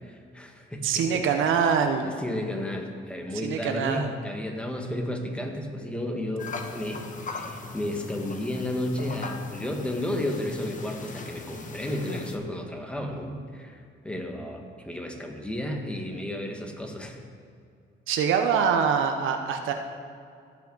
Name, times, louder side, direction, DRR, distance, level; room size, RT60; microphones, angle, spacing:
voice 1, 0.0-1.4 1.9-17.2, left 1 dB, 5° left, 2 dB, 1.5 m, -33 dB
voice 2, 0.8-2.1 3.4-4.1 18.1-19.7, right 7 dB, 80° right, 5 dB, 0.8 m, -24 dB
sound 1, 6.4-12.4, left 4 dB, 40° left, 1.1 m, -39 dB
16.0 x 5.8 x 3.9 m, 2.3 s
cardioid pair, 90°, 20 cm